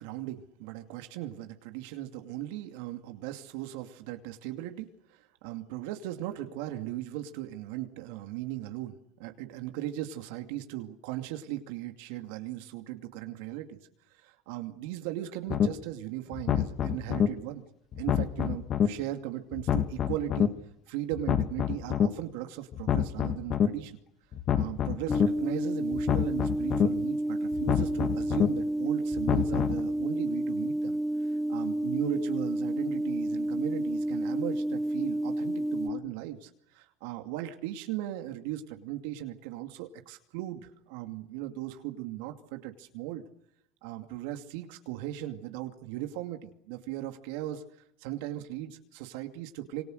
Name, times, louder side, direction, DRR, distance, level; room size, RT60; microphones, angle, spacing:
voice 1, 0.0-13.8 14.2-17.6 18.0-20.5 20.9-24.0 24.5-31.0 31.5-43.2 43.8-47.6 48.0-49.8, right 14 dB, 80° right, 6 dB, 2.5 m, -37 dB
sound 1, 15.5-15.7 16.3-17.3 17.9-18.9 19.5-20.5 21.1-22.1 22.7-23.7 24.3-25.3 25.9-26.9 27.5-28.5 29.1-29.8, left 9 dB, 45° left, 2.0 m, -27 dB
sound 2, 25.1-35.9, right 1 dB, 15° left, 1.8 m, -30 dB
27.0 x 24.5 x 6.6 m, 0.79 s
supercardioid pair, 105°, 0 cm